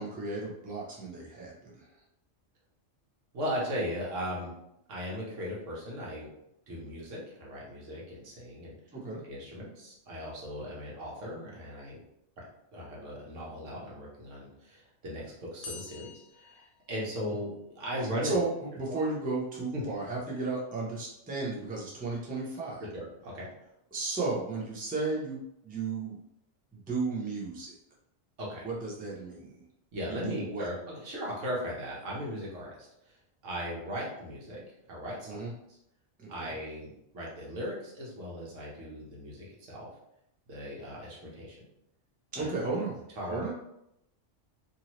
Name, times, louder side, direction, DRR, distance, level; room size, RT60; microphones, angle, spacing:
voice 1, 0.0-1.8 8.9-9.2 18.2-18.5 18.8-22.8 23.9-25.4 25.6-26.2 26.9-27.7 28.6-29.5 30.2-30.7 35.3-35.5 36.2-36.5 42.3-43.0 43.3-43.5, right 3 dB, 10° right, -4 dB, 0.4 m, -34 dB
voice 2, 3.3-4.5 4.9-6.3 6.7-8.7 9.2-12.0 12.4-12.5 12.7-18.4 18.9-19.0 19.7-19.8 22.9-23.5 28.4-28.7 29.9-33.2 33.4-34.6 34.9-35.4 35.7-35.8 36.3-39.9 40.5-41.6 42.4-42.5 43.2-43.5, equal, 90° right, -4 dB, 1.3 m, -38 dB
sound 1, 15.6-17.5, left 4 dB, 60° left, 0.6 m, -47 dB
2.7 x 2.7 x 3.0 m, 0.79 s
omnidirectional pair, 1.2 m